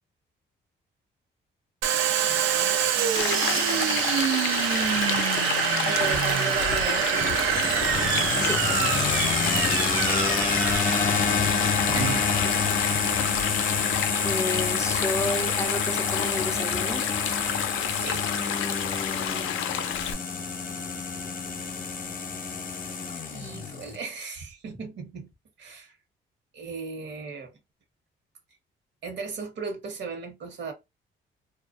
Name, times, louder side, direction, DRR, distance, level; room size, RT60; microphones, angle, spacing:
Domestic sounds home sounds, 1.8-13.2, right 9 dB, 90° right, 0.4 m, -26 dB
voice 1, 2.2-4.1 5.8-8.0 9.4-9.7 18.0-18.3 19.7-19.9 23.3-25.3 25.6-26.0 26.5-27.5 29.0-30.7, right 4 dB, 65° right, 1.0 m, -37 dB
Stream, 3.1-20.1, left 9 dB, 85° left, 0.4 m, -30 dB
sound 1, 7.2-24.0, left 5 dB, 45° left, 0.7 m, -28 dB
voice 2, 14.2-17.0, left 1 dB, 15° left, 0.3 m, -31 dB
2.4 x 2.3 x 2.4 m
cardioid pair, 90°, 20 cm